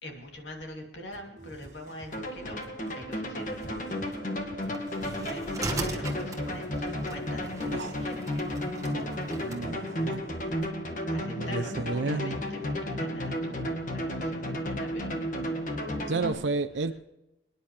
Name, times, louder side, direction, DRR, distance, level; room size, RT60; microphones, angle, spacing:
voice 1, 0.0-4.0 4.6-8.6 11.1-16.3, left 1 dB, 80° left, 2 dB, 2.8 m, -44 dB
sound 1, 1.1-10.7, right 1 dB, 40° right, 1.9 m, -51 dB
sound 2, 2.1-16.3, left 1 dB, 45° left, 1.8 m, -33 dB
sound 3, 4.7-9.6, right 2 dB, 20° right, 1.4 m, -39 dB
voice 2, 9.4-10.2 11.2-12.4 16.1-17.0, right 3 dB, 90° right, 7 dB, 0.6 m, -32 dB
27.5 x 10.0 x 3.3 m, 0.93 s
head